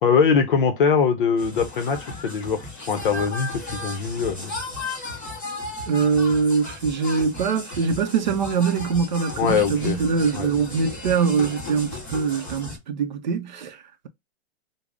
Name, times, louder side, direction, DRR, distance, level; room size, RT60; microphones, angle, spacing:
voice 1, 0.0-4.5 9.4-10.0 10.3-10.5, left 6 dB, 55° left, 0.6 m, -22 dB
sound 1, 1.4-12.8, left 2 dB, 5° left, 0.4 m, -35 dB
voice 2, 5.9-14.1, right 5 dB, 45° right, 0.5 m, -23 dB
3.5 x 2.0 x 3.6 m
hypercardioid pair, 180°, 32 cm